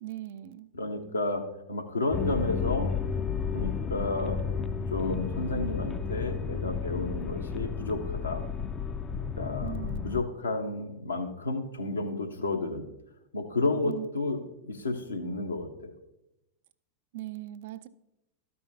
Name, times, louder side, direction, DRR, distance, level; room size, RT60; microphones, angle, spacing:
voice 1, 0.0-0.7 9.6-10.2 13.8-14.1 14.7-14.9 17.1-17.9, right 14 dB, 55° right, 0.4 m, -40 dB
voice 2, 0.7-2.9 3.5-4.4 4.9-8.5 9.4-9.8 10.0-12.9 13.3-15.9, left 2 dB, 75° left, 1.0 m, -31 dB
sound 1, 2.1-10.2, left 6 dB, 20° left, 0.4 m, -32 dB
13.0 x 5.4 x 2.7 m
figure-of-eight pair, 90°, 0 cm